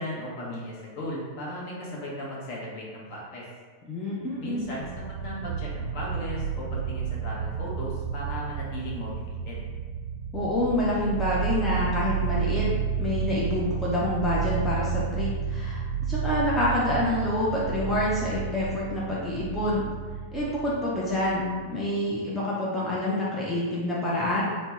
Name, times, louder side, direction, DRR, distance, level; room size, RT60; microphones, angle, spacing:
voice 1, 0.0-3.4 4.4-4.9 5.2-9.1 9.4-9.6, equal, 45° left, -4 dB, 0.8 m, -36 dB
voice 2, 3.9-4.6 10.3-12.7 13.0-15.8 16.1-19.9 20.3-24.4, left 1 dB, 15° left, -7 dB, 0.6 m, -27 dB
sound 1, 4.5-21.9, right 6 dB, 50° right, 0.3 m, -31 dB
3.2 x 2.1 x 2.9 m, 1.5 s
figure-of-eight pair, 90°, 0 cm